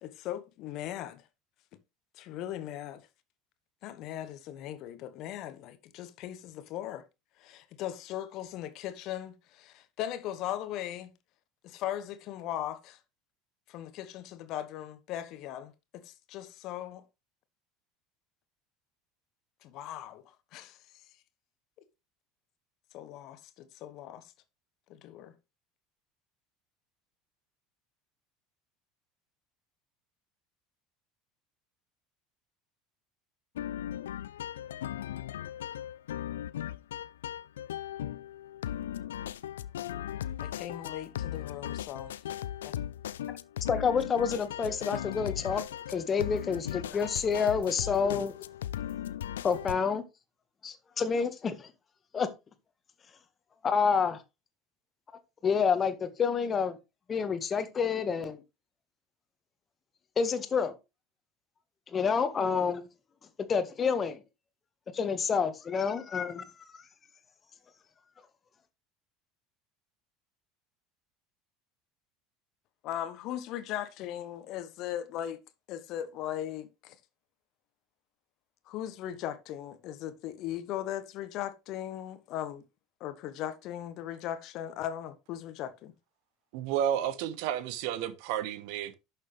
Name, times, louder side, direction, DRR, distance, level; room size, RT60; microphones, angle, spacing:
voice 1, 0.0-1.2 2.2-3.1 3.8-7.0 7.4-11.1 11.6-13.0 13.7-17.0 19.6-20.2 20.5-20.8 22.9-24.3 24.9-25.3 40.4-42.2 42.6-42.7 72.8-75.4 75.7-76.9 78.7-82.6 83.0-85.9, left 11 dB, 50° left, 1.2 m, -38 dB
sound 1, 33.6-49.8, left 11 dB, 75° left, 0.4 m, -37 dB
voice 2, 43.7-45.6 45.9-48.3 49.4-50.0 50.6-51.7 52.1-52.3 53.6-54.2 55.4-56.8 57.1-58.4 60.2-60.7 61.9-62.8 63.5-64.2 64.9-66.4, left 6 dB, 30° left, 1.6 m, -28 dB
voice 3, 86.5-88.9, right 10 dB, 60° right, 1.1 m, -31 dB
11.5 x 6.6 x 3.3 m
figure-of-eight pair, 70°, 0 cm